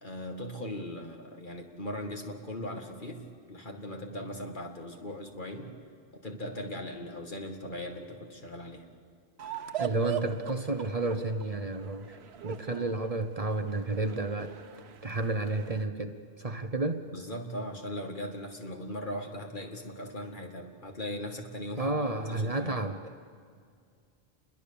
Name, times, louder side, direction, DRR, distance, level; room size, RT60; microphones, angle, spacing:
voice 1, 0.0-5.7 6.1-8.9 12.7-12.8 17.1-21.9 22.3-22.8, left 1 dB, 50° left, 3 dB, 2.3 m, -39 dB
sound 1, 9.4-15.8, right 9 dB, 85° right, 1.2 m, -41 dB
voice 2, 9.8-12.2 12.4-14.5 15.0-17.0 21.8-23.0, right 2 dB, 35° right, 7 dB, 1.0 m, -31 dB
29.0 x 21.5 x 7.0 m, 2.2 s
omnidirectional pair, 1.0 m